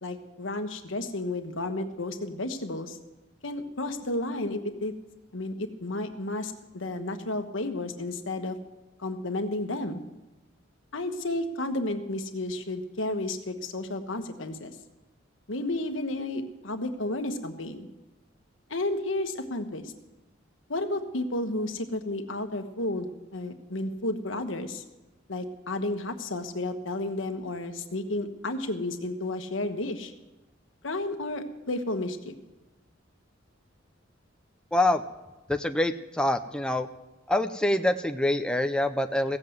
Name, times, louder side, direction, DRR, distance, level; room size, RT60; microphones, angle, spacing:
voice 1, 0.0-3.0 3.4-4.9 5.3-8.6 9.0-10.0 10.9-14.7 15.5-17.9 18.7-19.9 20.7-24.8 25.3-30.1 30.8-32.3, left 2 dB, 80° left, 6 dB, 1.3 m, -32 dB
voice 2, 34.7-35.0 35.5-36.9 37.3-39.4, left 1 dB, 5° left, 7 dB, 0.4 m, -25 dB
16.5 x 7.6 x 7.8 m, 1.1 s
head